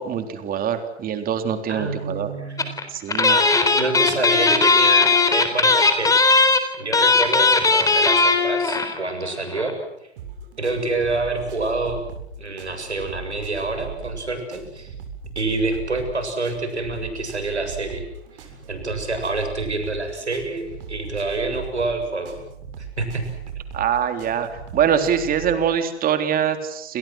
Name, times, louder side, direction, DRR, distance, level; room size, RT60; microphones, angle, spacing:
voice 1, 0.0-2.3 2.9-3.4 23.7-27.0, right 8 dB, 25° right, 7 dB, 3.8 m, -23 dB
voice 2, 1.7-2.8 3.3-6.1 6.8-9.8 10.6-12.1 12.4-14.9 15.4-18.1 18.4-22.3 22.8-23.3, right 3 dB, 90° right, 6 dB, 7.3 m, -27 dB
sound 1, 2.6-2.8 3.1-9.0 9.3-9.4 9.5-9.7, left 3 dB, 10° left, 4.1 m, -17 dB
sound 2, 10.2-25.6, right 6 dB, 55° right, 7.8 m, -38 dB
29.5 x 27.5 x 6.2 m, 0.77 s
figure-of-eight pair, 105°, 33 cm